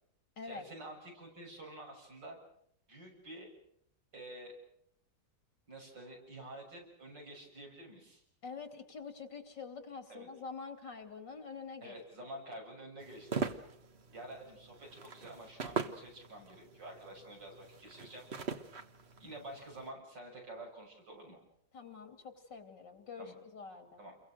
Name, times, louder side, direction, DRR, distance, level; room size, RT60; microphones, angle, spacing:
voice 1, 0.4-2.4 2.9-3.5 4.1-4.5 5.7-8.2 10.1-10.3 11.8-13.4 14.1-18.3 19.2-21.4 23.2-23.4 24.0-24.2, right 1 dB, 80° right, 1 dB, 7.4 m, -49 dB
voice 2, 8.4-12.0 21.7-24.0, left 5 dB, 80° left, 7 dB, 3.5 m, -46 dB
sound 1, 13.0-19.9, right 5 dB, 40° right, 1.5 m, -42 dB
29.5 x 23.0 x 6.5 m, 0.72 s
omnidirectional pair, 1.9 m